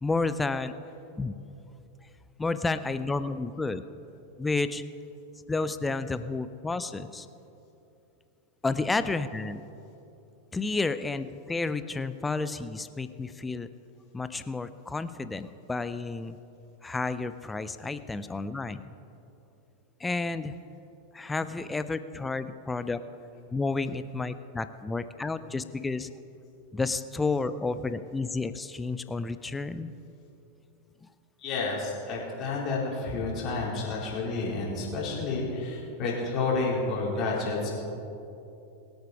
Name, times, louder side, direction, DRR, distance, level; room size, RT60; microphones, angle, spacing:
voice 1, 0.0-0.7 1.2-1.4 2.4-3.8 4.4-4.8 5.5-7.3 8.6-9.6 10.5-13.7 14.1-16.4 16.8-18.8 20.0-20.5 21.1-23.0 23.5-26.1 26.7-29.9, left 3 dB, 10° left, 12 dB, 0.5 m, -31 dB
voice 2, 31.4-37.8, left 3 dB, 35° left, -4 dB, 4.0 m, -30 dB
23.0 x 8.1 x 4.8 m, 2.8 s
figure-of-eight pair, 90°, 0 cm